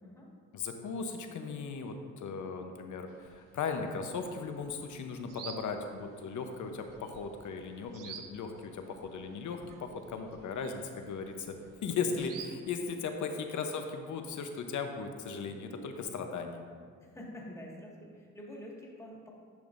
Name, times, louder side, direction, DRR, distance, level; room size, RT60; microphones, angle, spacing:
voice 1, 0.5-11.6 11.8-16.6, left 5 dB, 65° left, 5 dB, 0.8 m, -37 dB
sound 1, 3.1-13.0, right 7 dB, 75° right, 0.7 m, -52 dB
voice 2, 17.0-19.3, left 1 dB, 10° left, -4 dB, 1.7 m, -47 dB
10.5 x 6.1 x 2.6 m, 2.1 s
cardioid pair, 85°, 32 cm